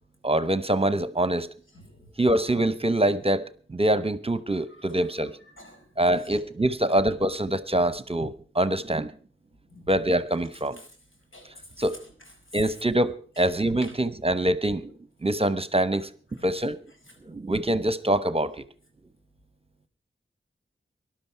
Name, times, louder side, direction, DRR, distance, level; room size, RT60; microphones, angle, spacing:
voice 1, 0.2-1.5 2.2-5.3 6.0-9.1 9.9-10.8 11.8-12.0 12.5-14.9 15.2-16.1 16.4-16.8 17.2-18.6, right 1 dB, 30° right, 0.9 m, -24 dB
voice 2, 1.7-2.1 4.7-5.1 5.6-5.9 6.3-6.4 9.7-9.9 10.8-10.9 11.3-11.9 12.5-12.8 13.4-13.5 13.8-14.0 16.3-16.5 17.3-17.4, left 1 dB, 85° left, 4.9 m, -48 dB
18.5 x 12.0 x 4.6 m
wide cardioid pair, 60°, 20 cm